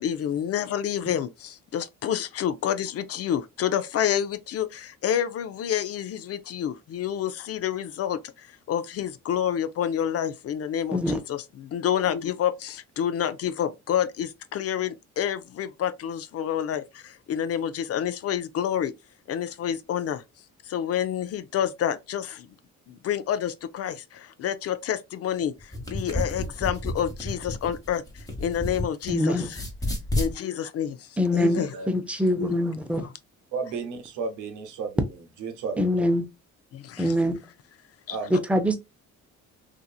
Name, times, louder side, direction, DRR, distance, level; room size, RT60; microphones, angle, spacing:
voice 1, 0.0-18.9 19.3-20.2 20.7-22.5 22.9-29.6 30.2-31.7 32.4-32.6 33.0-33.1 36.7-37.1 38.1-38.2, left 9 dB, 55° left, 0.4 m, -28 dB
sound 1, 25.6-29.1 29.4-30.3, left 1 dB, 10° left, 1.1 m, -31 dB
voice 2, 29.1-29.5 31.2-33.1 35.8-36.3 37.0-37.4 38.3-38.8, left 1 dB, 5° right, 0.6 m, -24 dB
voice 3, 31.6-31.9 33.5-35.0 35.4-36.1 38.1-38.4, right 5 dB, 80° right, 0.9 m, -33 dB
2.8 x 2.5 x 2.3 m
cardioid pair, 90°, 30 cm